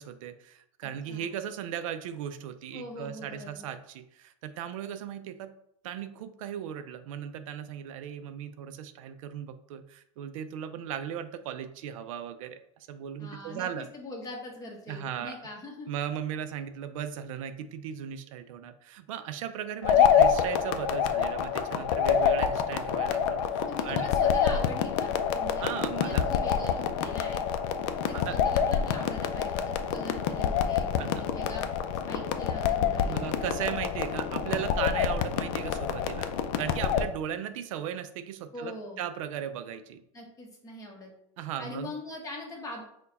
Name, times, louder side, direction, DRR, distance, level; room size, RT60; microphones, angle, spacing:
voice 1, 0.0-5.5 5.8-13.9 14.9-15.4 15.9-24.1 25.6-26.3 28.1-28.4 31.0-31.2 33.0-40.0 41.4-41.9, right 9 dB, 75° right, 10 dB, 0.4 m, -37 dB
voice 2, 0.8-1.3 2.7-3.7 13.2-15.9 23.6-25.6 25.9-27.4 28.0-31.6 32.1-33.2 38.5-39.1 40.1-41.1 41.6-42.8, left 1 dB, 20° left, -1 dB, 1.1 m, -42 dB
sound 1, 19.8-37.1, left 8 dB, 60° left, 0.4 m, -27 dB
4.5 x 2.2 x 4.0 m, 0.76 s
supercardioid pair, 125°, 17 cm